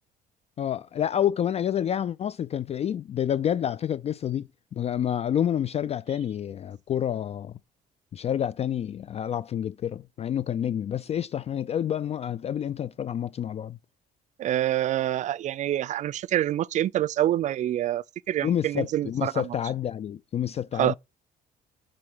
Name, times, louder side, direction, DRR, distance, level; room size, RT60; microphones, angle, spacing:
voice 1, 0.6-7.5 8.1-13.8 18.4-20.9, left 9 dB, 40° left, 0.4 m, -28 dB
voice 2, 14.4-19.5 20.8-20.9, right 12 dB, 45° right, 0.4 m, -26 dB
7.8 x 3.7 x 5.5 m
cardioid pair, 110°, 17 cm